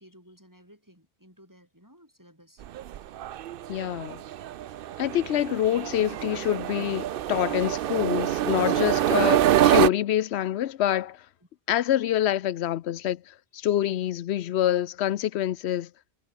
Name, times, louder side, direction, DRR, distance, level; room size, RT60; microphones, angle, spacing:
voice 1, 0.0-2.6 13.9-14.1, equal, 15° right, 8.1 m, -55 dB
sound 1, 2.6-9.9, right 12 dB, 65° right, 0.7 m, -25 dB
voice 2, 3.7-4.2 5.0-11.3 11.7-15.9, left 12 dB, 80° left, 0.9 m, -26 dB
omnidirectional pair, 1.1 m